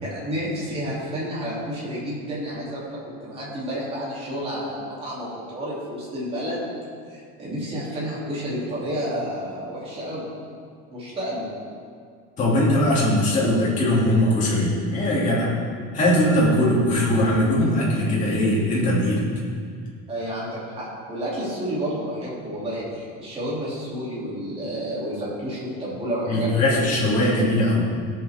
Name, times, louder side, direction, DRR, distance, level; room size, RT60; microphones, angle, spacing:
voice 1, 0.0-6.7 7.1-10.3 10.9-11.5 20.1-26.8, equal, 20° right, -7 dB, 3.0 m, -30 dB
voice 2, 12.4-15.5 15.9-19.2 26.3-27.9, left 1 dB, 25° left, -6 dB, 2.6 m, -20 dB
17.5 x 7.0 x 3.6 m, 2.1 s
cardioid pair, 180°, 29 cm